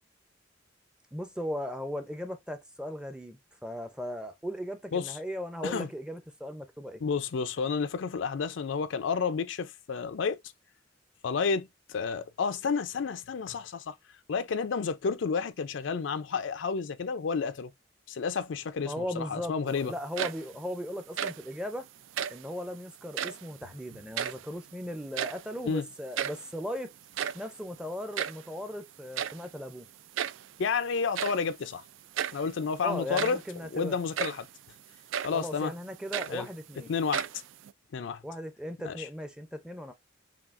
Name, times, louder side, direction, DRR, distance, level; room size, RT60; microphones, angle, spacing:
voice 1, 1.1-7.0 18.8-21.9 22.3-26.9 27.3-29.9 32.8-34.0 35.3-36.9 38.2-39.9, equal, 5° right, 0.5 m, -37 dB
voice 2, 7.0-10.4 11.2-14.0 14.3-17.7 18.1-19.9 24.2-24.3 25.7-25.9 30.6-31.8 32.3-33.4 33.7-34.5 35.2-35.7 36.3-36.5 36.9-37.2 37.9-38.2 38.8-39.1, left 5 dB, 75° left, 0.4 m, -31 dB
sound 1, 20.0-20.7 21.0-21.5 22.1-22.5 23.1-23.5 23.9-24.7 25.0-25.6 25.9-26.0 26.2-26.5 27.0-28.5 29.2-29.5 30.2-30.5 31.1-31.5 32.2-32.5 33.0-33.5 34.2-34.5 35.1-35.4 35.9-36.7 37.1-37.7, right 9 dB, 80° right, 0.3 m, -34 dB
5.7 x 2.3 x 2.5 m
head